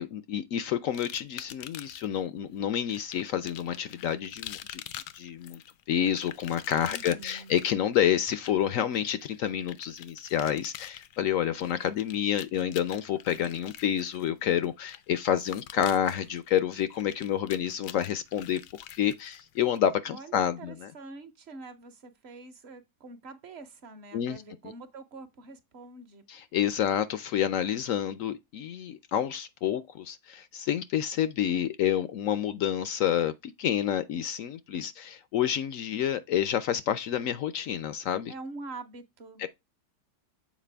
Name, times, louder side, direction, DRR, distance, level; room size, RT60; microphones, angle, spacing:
voice 1, 0.0-4.8 5.1-5.6 5.9-18.6 18.9-20.9 24.1-24.4 26.3-38.3 39.4-39.5, left 10 dB, 70° left, 0.8 m, -29 dB
sound 1, 0.9-2.2 2.9-19.8, left 12 dB, 85° left, 1.2 m, -46 dB
voice 2, 6.9-7.5 20.1-26.2 38.3-39.4, right 3 dB, 45° right, 1.0 m, -45 dB
7.4 x 4.6 x 3.3 m
omnidirectional pair, 1.8 m